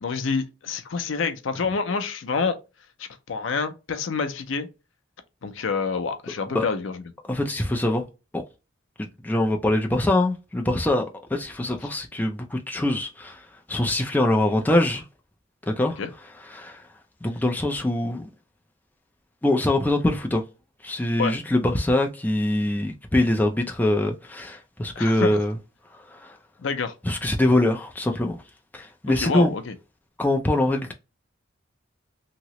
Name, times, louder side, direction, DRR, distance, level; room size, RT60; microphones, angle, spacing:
voice 1, 0.0-2.6 3.0-4.7 5.4-7.0 16.0-16.1 21.2-21.4 25.0-25.4 26.6-27.0 29.2-29.7, left 5 dB, 65° left, 0.5 m, -27 dB
voice 2, 7.3-8.0 8.3-8.4 9.0-11.1 11.3-15.0 15.8-16.0 16.5-16.8 17.2-18.2 19.4-20.4 20.8-25.5 26.1-26.4 27.0-28.4 28.7-29.5 30.2-30.9, left 1 dB, 10° left, 0.4 m, -23 dB
2.9 x 2.8 x 2.9 m
head